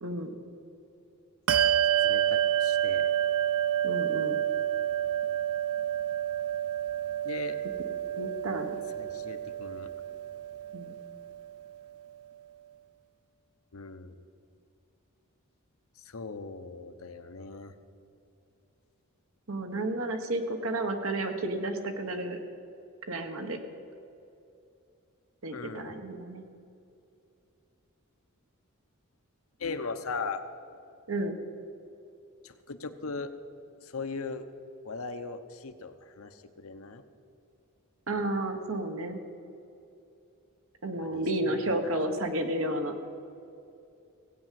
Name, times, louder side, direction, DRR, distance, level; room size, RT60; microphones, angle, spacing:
voice 1, 0.0-0.4 3.8-4.4 8.1-8.8 10.7-10.9 19.5-22.4 23.1-23.6 25.4-26.4 31.1-31.3 38.1-39.2 40.8-42.9, right 1 dB, 75° right, 5 dB, 1.4 m, -32 dB
Bell, 1.5-11.5, right 11 dB, 90° right, 0.5 m, -29 dB
voice 2, 2.0-3.1 7.2-7.6 9.0-9.9 13.7-14.2 16.0-17.7 25.5-25.9 29.6-30.5 32.4-33.3 33.8-34.5 34.8-37.0 41.0-42.0, left 4 dB, 80° left, 9 dB, 0.9 m, -39 dB
17.0 x 8.7 x 7.6 m, 2.7 s
head